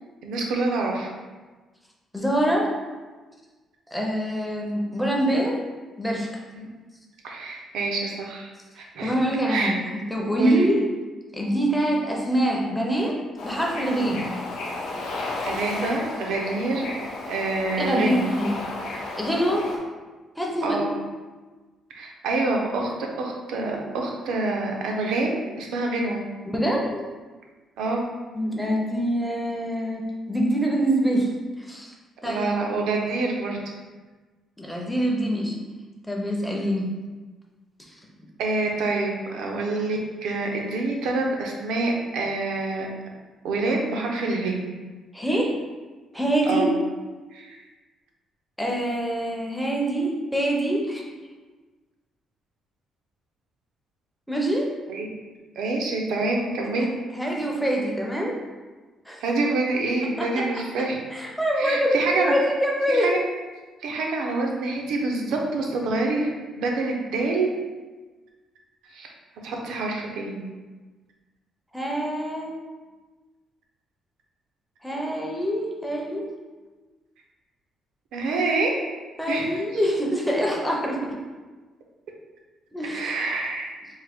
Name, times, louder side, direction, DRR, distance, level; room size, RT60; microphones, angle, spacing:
voice 1, 0.2-1.1 6.5-6.7 7.2-8.5 8.8-9.1 9.5-9.7 10.4-10.7 15.4-16.9 17.3-18.3 20.6-20.9 21.9-22.9 23.2-26.2 27.8-28.0 32.2-33.6 38.4-42.9 43.4-44.6 46.5-46.7 47.3-47.6 54.9-55.1 55.6-56.9 59.2-61.0 61.5-62.3 62.9-63.2 63.8-67.5 68.9-69.1 69.4-70.5 78.1-78.7 79.3-79.6 82.8-83.7, right 3 dB, 85° right, 0 dB, 0.6 m, -26 dB
voice 2, 2.1-2.7 3.9-5.6 6.0-6.3 9.0-10.8 11.3-13.1 13.4-14.4 17.8-18.5 19.2-19.6 20.4-20.8 26.4-27.0 28.3-30.0 30.3-31.3 31.6-31.9 32.2-32.5 34.6-35.5 36.1-36.9 45.1-45.5 46.1-46.7 48.6-51.0 54.3-54.7 57.1-58.4 59.1-59.2 60.2-60.4 61.1-63.1 71.7-72.5 74.8-76.2 79.2-81.1 82.7-83.2, right 1 dB, ahead, -2 dB, 0.5 m, -25 dB
Bird / Ocean, 13.4-19.8, left 2 dB, 70° left, 0.7 m, -33 dB
3.6 x 2.6 x 3.5 m, 1.3 s
cardioid pair, 170°, 0 cm